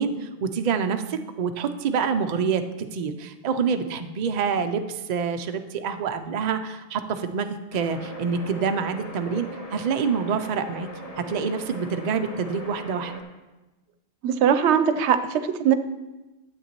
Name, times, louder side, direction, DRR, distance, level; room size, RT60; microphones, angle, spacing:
voice 1, 0.0-2.6 2.9-10.9 11.2-13.1, right 6 dB, 50° right, 8 dB, 0.5 m, -27 dB
sound 1, 7.7-13.2, equal, 35° left, 1.1 m, -40 dB
voice 2, 14.2-15.7, right 8 dB, 90° right, 10 dB, 0.9 m, -21 dB
12.0 x 7.7 x 2.9 m, 1.1 s
omnidirectional pair, 1.1 m